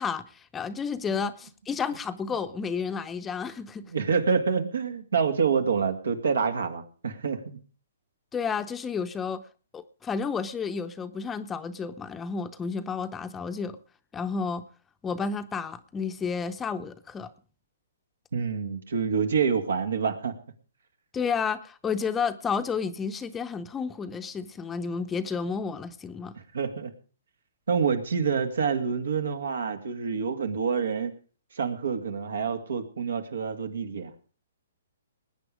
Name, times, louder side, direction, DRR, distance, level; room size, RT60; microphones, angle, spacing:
voice 1, 0.0-3.8 8.3-9.4 9.7-13.8 14.1-14.6 15.0-17.3 21.1-26.3, left 5 dB, 15° left, 11 dB, 0.7 m, -31 dB
voice 2, 3.9-7.6 18.3-20.4 26.5-26.9 27.7-31.1 31.5-34.1, right 6 dB, 80° right, 7 dB, 2.3 m, -27 dB
20.0 x 9.1 x 5.0 m, 0.40 s
hypercardioid pair, 145°, 0 cm